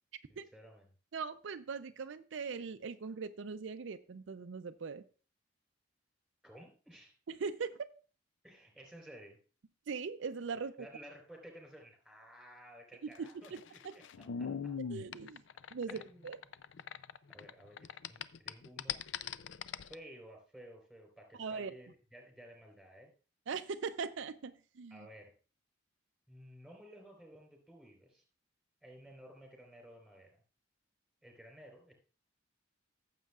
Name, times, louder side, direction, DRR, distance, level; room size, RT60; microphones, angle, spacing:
voice 1, 0.3-0.9 6.4-7.2 8.4-9.4 10.8-14.8 15.9-16.4 17.3-19.0 19.8-23.1 24.9-25.4 26.3-28.2 28.8-30.4 31.2-31.9, equal, ahead, 2 dB, 4.0 m, -54 dB
voice 2, 1.1-5.0 7.3-7.8 9.9-10.7 13.0-13.9 14.9-15.4 15.7-16.4 21.4-21.7 23.5-25.1, right 5 dB, 70° right, 9 dB, 0.5 m, -40 dB
sound 1, 13.2-17.5 17.8-19.9, left 7 dB, 65° left, 0.4 m, -41 dB
14.5 x 7.5 x 2.4 m, 0.36 s
head